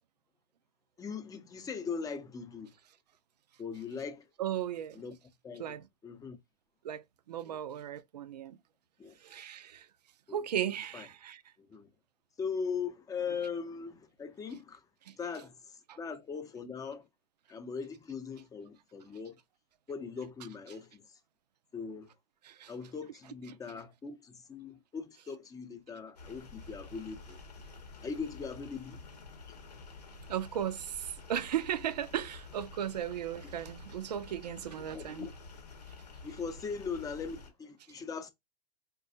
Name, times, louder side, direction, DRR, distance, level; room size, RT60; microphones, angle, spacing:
voice 1, 1.0-2.7 3.6-4.3 4.9-5.1 5.4-5.8 6.0-6.4 7.4-7.6 9.0-9.1 10.3-10.4 10.9-11.1 11.6-11.9 12.4-14.9 15.2-17.0 17.5-19.4 19.9-21.2 21.7-22.1 22.7-27.4 28.0-29.0 33.4-33.5 34.8-35.3 36.2-38.3, left 5 dB, 15° left, 0.6 m, -40 dB
voice 2, 4.4-5.0 5.6-5.8 6.8-8.6 9.2-9.9 10.3-11.4 15.1-15.2 15.9-16.0 22.4-22.7 30.3-35.3, right 10 dB, 85° right, 0.4 m, -36 dB
sound 1, 26.2-37.5, left 3 dB, 90° left, 1.1 m, -50 dB
4.0 x 2.2 x 2.7 m
hypercardioid pair, 110°, 20 cm